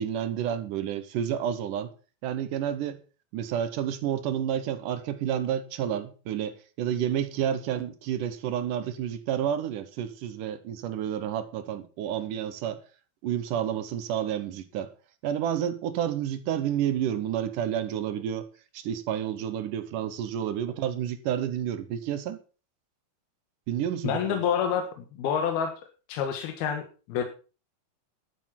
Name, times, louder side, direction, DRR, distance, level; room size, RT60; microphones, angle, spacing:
voice 1, 0.0-1.9 2.2-3.0 3.3-12.8 13.2-14.9 15.2-18.5 18.7-22.4 23.7-24.4, right 10 dB, 70° right, 2.3 m, -30 dB
voice 2, 24.0-25.7 26.1-27.2, left 8 dB, 85° left, 3.4 m, -28 dB
12.0 x 9.0 x 5.8 m
omnidirectional pair, 4.3 m